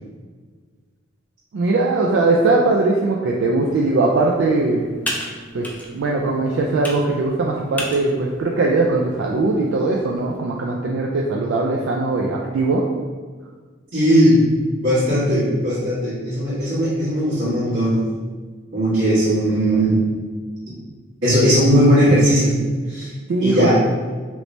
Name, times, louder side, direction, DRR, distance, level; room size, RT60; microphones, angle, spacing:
voice 1, 1.5-4.9 5.5-12.9 23.3-23.7, right 3 dB, 70° right, -1 dB, 0.3 m, -20 dB
Computer keyboard, 3.6-10.4, left 1 dB, 10° left, 0.4 m, -35 dB
voice 2, 13.9-14.4 14.8-18.0 18.7-20.0 21.2-22.6 22.9-23.1 23.4-23.7, equal, 85° right, -13 dB, 1.4 m, -17 dB
3.2 x 3.0 x 2.6 m, 1.5 s
head